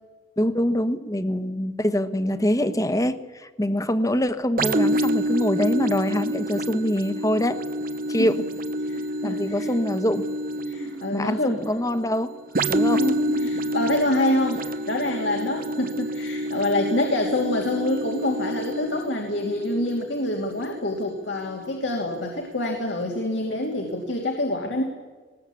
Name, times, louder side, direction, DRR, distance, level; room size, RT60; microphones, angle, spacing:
voice 1, 0.4-7.6 8.1-8.4 9.2-10.2 11.1-12.3 12.7-13.7, left 1 dB, 20° left, 11 dB, 1.2 m, -24 dB
sound 1, 4.6-22.1 22.6-22.8, right 1 dB, 50° right, 1.0 m, -28 dB
voice 2, 8.8-9.7 10.7-11.6 12.8-12.9 13.4-24.8, left 1 dB, 80° left, 1 dB, 2.8 m, -26 dB
20.0 x 19.0 x 8.4 m, 1.4 s
head